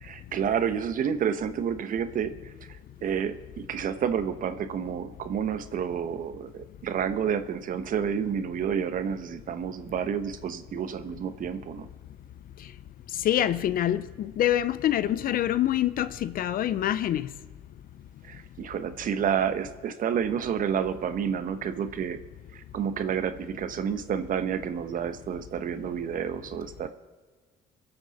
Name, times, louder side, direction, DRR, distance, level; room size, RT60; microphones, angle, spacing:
voice 1, 0.0-2.5 3.0-11.9 18.2-22.2 22.5-26.9, right 8 dB, 55° right, 1.1 m, -30 dB
voice 2, 13.2-17.3, left 12 dB, 60° left, 0.7 m, -25 dB
23.0 x 8.0 x 4.2 m
supercardioid pair, 85°, 17 cm